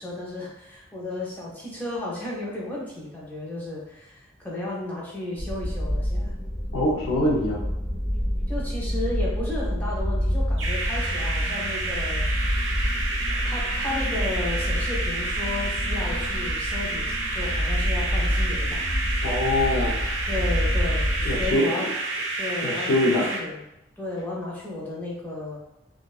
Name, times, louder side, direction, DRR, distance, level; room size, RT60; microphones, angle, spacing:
voice 1, 0.0-6.3 8.5-12.3 13.4-18.9 20.3-21.9 22.4-23.6 24.0-25.6, left 2 dB, 10° left, -5 dB, 0.5 m, -33 dB
sound 1, 5.4-21.5, equal, 40° left, 1.1 m, -28 dB
voice 2, 6.7-7.6 19.2-20.1 21.2-21.7 22.6-23.3, left 1 dB, 80° left, -4 dB, 0.6 m, -24 dB
sound 2, 10.6-23.4, right 2 dB, 75° right, 0.5 m, -30 dB
2.4 x 2.2 x 2.4 m, 0.88 s
head